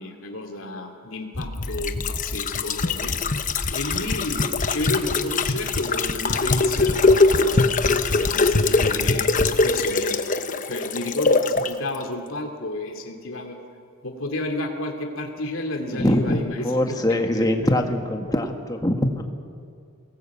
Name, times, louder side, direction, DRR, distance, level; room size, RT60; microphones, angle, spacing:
voice 1, 0.0-3.1 3.7-10.2 10.7-13.6 14.0-17.7, left 2 dB, 65° left, 3 dB, 2.5 m, -32 dB
sound 1, 1.4-11.7 12.0-12.1, left 3 dB, 35° left, 0.9 m, -22 dB
voice 2, 15.9-19.2, left 1 dB, 15° left, 4 dB, 1.7 m, -23 dB
23.5 x 19.0 x 8.5 m, 2.3 s
head